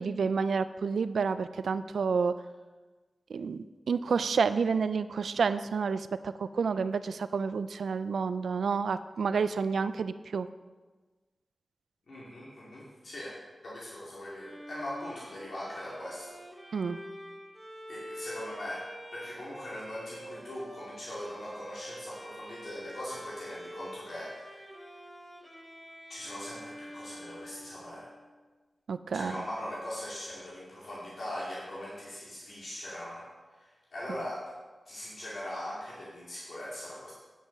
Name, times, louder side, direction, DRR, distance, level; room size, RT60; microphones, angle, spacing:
voice 1, 0.0-2.3 3.3-10.5 16.7-17.0 28.9-29.3, right 5 dB, 85° right, 13 dB, 0.3 m, -29 dB
voice 2, 12.1-13.4 13.6-16.4 17.9-24.7 26.1-28.1 29.1-33.3 33.6-34.4 34.9-37.1, left 1 dB, 75° left, -7 dB, 2.4 m, -40 dB
Bowed string instrument, 14.4-28.3, equal, 5° right, 1.9 m, -47 dB
9.2 x 6.2 x 5.1 m, 1.3 s
cardioid pair, 40°, 0 cm